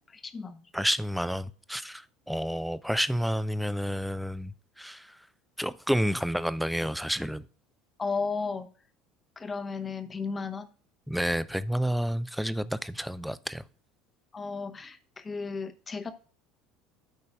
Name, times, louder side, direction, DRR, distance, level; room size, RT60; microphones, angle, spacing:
voice 1, 0.0-0.6 8.0-8.7 9.4-10.7 14.3-16.1, left 4 dB, 25° left, 0.9 m, -34 dB
voice 2, 0.7-5.2 5.6-7.5 11.1-13.6, equal, ahead, 0.5 m, -30 dB
12.5 x 5.3 x 2.3 m
figure-of-eight pair, 65°, 0 cm